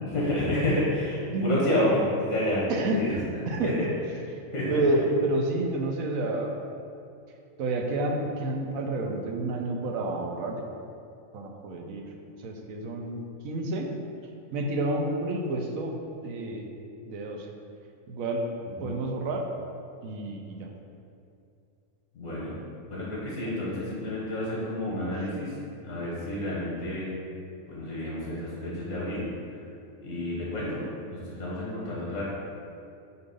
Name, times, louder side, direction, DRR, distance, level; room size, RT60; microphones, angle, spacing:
voice 1, 0.0-3.1 3.6-3.7 4.5-4.8 18.8-18.9 22.1-22.5 22.9-25.5 25.8-27.1 27.7-29.2 30.0-30.8 31.1-32.2, left 1 dB, 65° left, -7 dB, 1.5 m, -29 dB
voice 2, 2.7-3.7 4.7-6.6 7.6-10.7 11.3-12.1 12.4-13.9 14.5-15.9 16.2-16.7 17.1-17.5 18.1-18.4 18.8-19.5 20.0-20.7, right 2 dB, 90° right, 2 dB, 1.1 m, -29 dB
6.8 x 2.7 x 5.4 m, 2.5 s
omnidirectional pair, 1.4 m